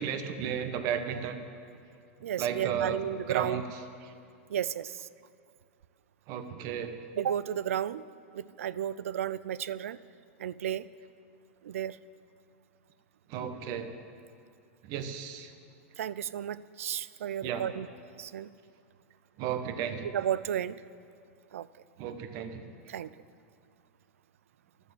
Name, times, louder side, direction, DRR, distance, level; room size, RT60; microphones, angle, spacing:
voice 1, 0.0-1.4 2.4-3.0 3.3-3.6 6.3-7.0 13.3-13.9 14.8-15.5 17.4-17.6 19.4-20.1 22.0-22.7, right 8 dB, 50° right, 7 dB, 1.4 m, -33 dB
voice 2, 2.2-3.6 4.5-5.1 7.2-8.0 8.3-10.0 10.4-10.9 11.6-12.0 16.0-17.9 18.2-18.5 20.1-20.8 21.5-21.7 22.9-23.1, right 10 dB, 80° right, 18 dB, 0.4 m, -33 dB
12.0 x 11.5 x 7.6 m, 2.4 s
hypercardioid pair, 105°, 7 cm